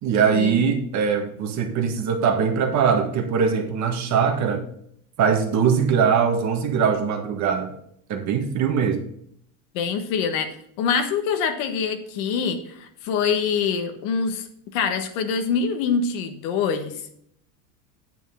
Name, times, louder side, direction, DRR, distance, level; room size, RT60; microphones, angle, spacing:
voice 1, 0.0-4.6 5.2-7.7 8.1-9.1, right 6 dB, 40° right, 4 dB, 1.6 m, -21 dB
voice 2, 9.7-17.1, left 6 dB, 65° left, 7 dB, 1.5 m, -25 dB
9.2 x 8.5 x 3.7 m, 0.68 s
supercardioid pair, 145°, 44 cm